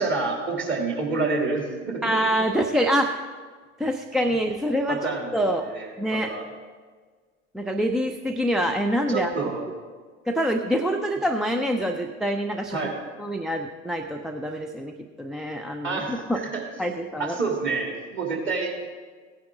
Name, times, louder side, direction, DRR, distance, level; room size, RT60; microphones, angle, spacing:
voice 1, 0.0-2.0 4.9-5.3 5.7-6.4 9.1-9.6 12.7-12.9 15.8-16.6 17.2-18.7, right 3 dB, 30° right, 0 dB, 2.8 m, -28 dB
voice 2, 2.0-3.2 3.8-5.7 6.0-6.3 7.5-9.3 10.3-12.8 13.2-16.4 16.8-17.4, equal, ahead, 4 dB, 0.3 m, -26 dB
16.0 x 9.4 x 3.7 m, 1.5 s
figure-of-eight pair, 70°, 38 cm